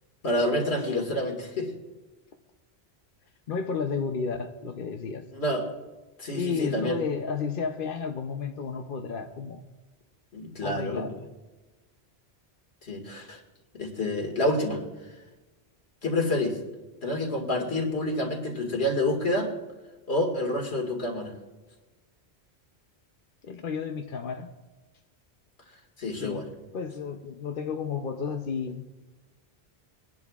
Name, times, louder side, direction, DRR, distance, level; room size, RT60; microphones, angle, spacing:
voice 1, 0.2-1.7 5.3-5.7 6.2-7.0 10.3-11.0 12.8-13.4 13.8-14.8 16.0-16.6 17.0-19.5 20.1-21.3 26.0-26.5, left 1 dB, 75° left, 1 dB, 2.3 m, -28 dB
voice 2, 3.5-5.2 6.3-9.6 10.6-11.3 23.4-24.5 26.2-26.4 26.7-28.9, left 5 dB, 55° left, 5 dB, 0.9 m, -32 dB
23.0 x 10.5 x 2.4 m, 1.2 s
omnidirectional pair, 1.1 m